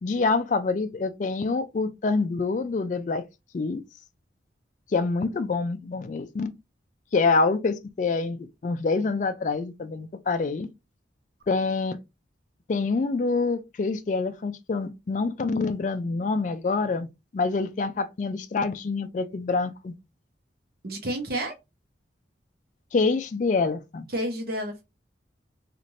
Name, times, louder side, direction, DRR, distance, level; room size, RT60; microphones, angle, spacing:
voice 1, 0.0-3.2 3.5-3.8 4.9-6.5 7.1-10.7 11.5-12.0 12.7-17.1 17.3-19.9 22.9-24.1, left 4 dB, 40° left, 0.3 m, -26 dB
voice 2, 20.8-21.6 24.1-24.8, right 1 dB, 55° right, 0.9 m, -30 dB
3.2 x 2.5 x 2.6 m
head